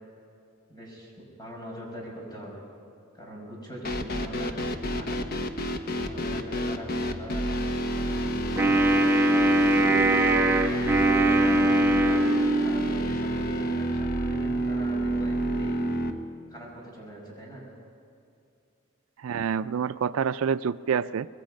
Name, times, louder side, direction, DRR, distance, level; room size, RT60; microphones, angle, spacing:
voice 1, 0.7-2.6 3.1-5.2 6.0-7.5 8.0-9.9 10.7-15.8 16.5-17.7, equal, 20° left, -2 dB, 6.0 m, -41 dB
sound 1, 3.8-16.1, right 1 dB, 50° left, 1.2 m, -29 dB
Wind instrument woodwind instrument, 8.6-13.0, right 1 dB, 10° right, 1.3 m, -22 dB
voice 2, 19.2-21.3, right 7 dB, 80° right, 14 dB, 0.4 m, -27 dB
25.5 x 20.5 x 5.2 m, 2.5 s
head